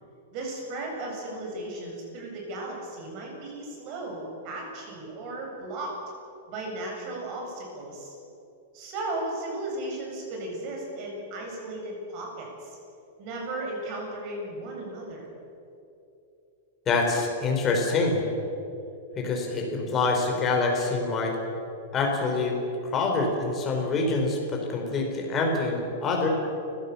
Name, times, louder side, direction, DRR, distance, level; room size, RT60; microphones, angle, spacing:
voice 1, 0.3-5.9 6.5-8.2 8.7-12.8 13.2-15.3, right 2 dB, 40° right, 0 dB, 7.8 m, -35 dB
voice 2, 16.9-18.2 19.2-21.3 21.9-22.6 22.9-26.3, left 3 dB, 20° left, 0 dB, 4.8 m, -26 dB
29.0 x 16.5 x 7.3 m, 2.8 s
supercardioid pair, 160°, 0 cm